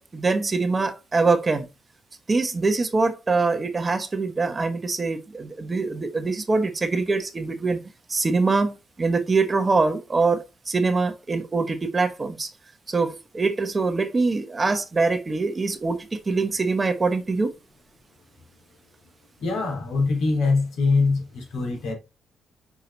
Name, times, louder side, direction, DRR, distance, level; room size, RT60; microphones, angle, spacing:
voice 1, 0.0-1.7 2.3-7.8 8.1-12.5 12.9-17.5, right 3 dB, 25° right, 1.1 m, -24 dB
voice 2, 19.4-21.9, left 3 dB, 80° left, 3.4 m, -23 dB
6.0 x 4.7 x 4.1 m
cardioid pair, 90°, 0 cm